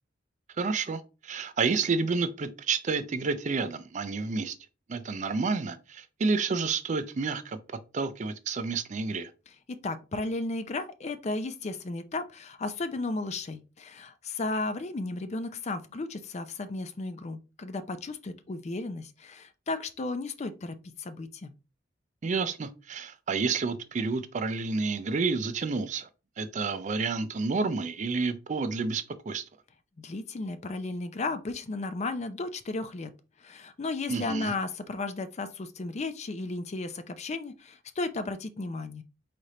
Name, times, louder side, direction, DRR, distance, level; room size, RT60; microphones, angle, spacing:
voice 1, 0.6-4.6 4.9-7.6 7.9-9.3 22.2-26.1 26.4-29.4 34.1-34.5, right 4 dB, 40° right, 0.4 m, -30 dB
voice 2, 9.7-21.5 30.0-33.1 33.4-39.0, left 3 dB, 35° left, 0.4 m, -34 dB
4.2 x 3.3 x 3.7 m
head